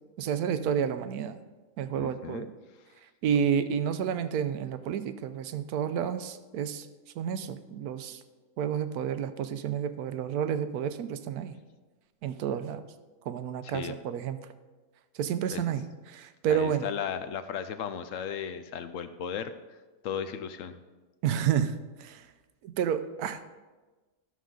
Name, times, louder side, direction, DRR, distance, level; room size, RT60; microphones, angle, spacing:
voice 1, 0.2-1.4 1.8-2.5 3.2-6.9 7.2-8.2 8.6-11.6 12.2-12.8 13.3-14.4 15.2-15.8 16.1-16.9 21.2-21.7 22.0-22.2 22.6-23.6, right 8 dB, 85° right, 11 dB, 1.1 m, -30 dB
voice 2, 2.0-2.4 13.6-14.0 15.5-15.6 16.5-19.5 20.0-20.8, left 8 dB, 70° left, 11 dB, 0.9 m, -35 dB
13.0 x 6.4 x 3.8 m, 1.3 s
omnidirectional pair, 1.6 m